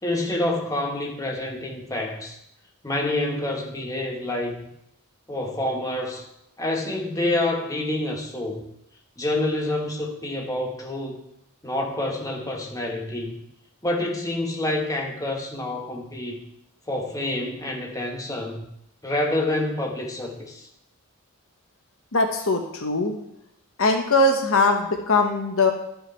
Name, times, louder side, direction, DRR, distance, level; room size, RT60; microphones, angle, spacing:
voice 1, 0.0-2.4 2.8-4.7 5.3-6.2 6.6-8.6 9.2-11.2 11.6-13.3 13.8-16.4 16.9-18.6 19.0-20.7, left 1 dB, 15° left, 0 dB, 1.3 m, -27 dB
voice 2, 22.1-23.1 23.8-25.7, left 2 dB, 65° left, 4 dB, 1.0 m, -21 dB
12.0 x 5.6 x 4.5 m, 0.78 s
head